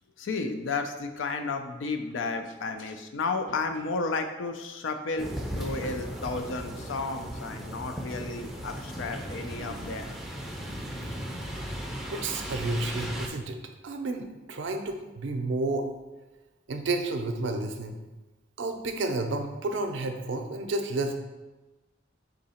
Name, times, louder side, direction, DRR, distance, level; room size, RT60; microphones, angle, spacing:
voice 1, 0.2-5.3 5.6-10.1, left 3 dB, 90° left, 6 dB, 0.5 m, -32 dB
sound 1, 5.2-13.3, equal, ahead, 0.4 m, -37 dB
voice 2, 12.1-13.6 13.8-15.9 16.7-17.9 18.6-21.1, right 2 dB, 75° right, 5 dB, 0.5 m, -31 dB
3.9 x 2.8 x 4.2 m, 1.1 s
head